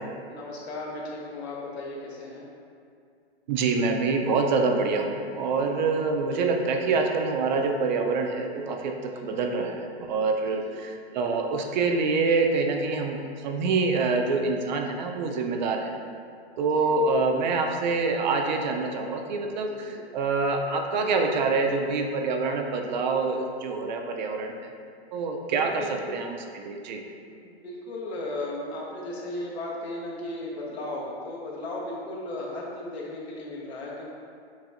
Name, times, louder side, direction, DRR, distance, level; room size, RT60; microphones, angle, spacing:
voice 1, 0.3-2.5 5.7-5.9 9.1-9.3 10.5-10.8 15.6-15.8 16.7-17.0 19.6-20.0 25.5-26.2 27.3-34.1, left 2 dB, 75° left, -3 dB, 1.1 m, -36 dB
voice 2, 3.5-15.9 16.6-24.6 25.1-25.8 26.1-27.0, right 4 dB, 45° right, 3 dB, 0.5 m, -26 dB
7.0 x 2.6 x 2.5 m, 2.3 s
hypercardioid pair, 140°, 32 cm